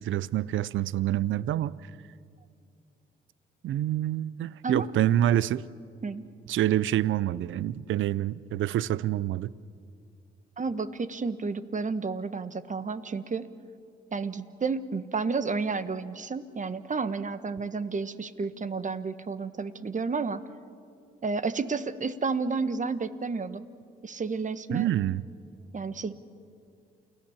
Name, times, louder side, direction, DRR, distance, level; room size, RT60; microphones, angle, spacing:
voice 1, 0.0-1.8 3.6-5.6 6.5-9.5 24.7-25.2, right 12 dB, 70° right, 0.5 m, -27 dB
voice 2, 10.6-13.5 14.1-20.4 21.2-23.6 24.0-24.9 25.7-26.1, right 4 dB, 35° right, 1.2 m, -31 dB
28.5 x 16.5 x 7.3 m
supercardioid pair, 60°, 21 cm